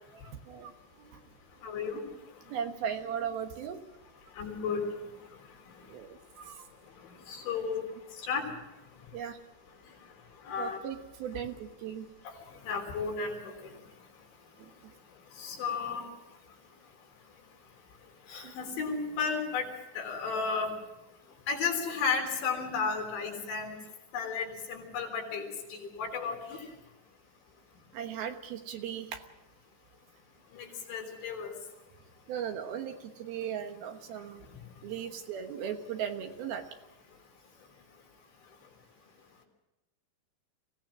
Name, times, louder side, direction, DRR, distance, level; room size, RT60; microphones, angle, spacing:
voice 1, 0.1-0.7 1.0-1.2 2.5-3.8 5.9-6.7 9.1-9.4 10.6-12.1 14.6-14.9 18.4-18.5 27.9-29.2 32.3-34.5 34.8-36.7, right 8 dB, 70° right, 6 dB, 2.8 m, -37 dB
voice 2, 1.6-2.0 4.4-4.8 7.3-7.8 8.2-8.5 10.5-10.8 12.6-13.4 15.4-16.0 18.3-19.7 20.0-20.7 21.5-23.8 24.1-26.6 30.5-31.5, left 5 dB, 85° left, 1 dB, 6.0 m, -33 dB
24.5 x 17.0 x 6.2 m, 0.98 s
omnidirectional pair, 5.1 m